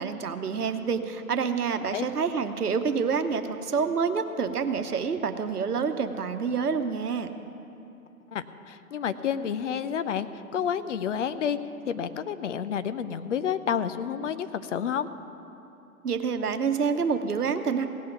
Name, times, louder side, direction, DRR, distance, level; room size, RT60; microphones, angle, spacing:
voice 1, 0.0-7.3 16.0-17.9, right 5 dB, 90° right, 8 dB, 1.0 m, -27 dB
voice 2, 8.3-11.6 11.9-15.1, left 8 dB, 55° left, 12 dB, 0.6 m, -30 dB
17.0 x 5.7 x 9.1 m, 2.9 s
hypercardioid pair, 135°, 44 cm